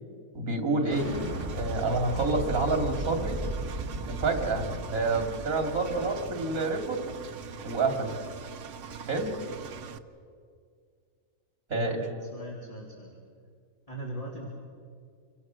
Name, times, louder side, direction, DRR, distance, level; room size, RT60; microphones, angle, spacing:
voice 1, 0.3-1.1 1.5-3.4 4.1-7.1 7.6-8.1 9.1-9.3 11.7-12.0, right 3 dB, 85° right, 4 dB, 3.1 m, -28 dB
Explosion, 0.8-6.3, right 1 dB, 25° right, 2.8 m, -36 dB
Engine, 0.9-10.0, right 6 dB, 65° right, 1.2 m, -42 dB
voice 2, 11.7-13.2 13.9-14.5, right 1 dB, 25° left, -5 dB, 3.5 m, -39 dB
28.5 x 24.0 x 6.3 m, 2.1 s
omnidirectional pair, 1.5 m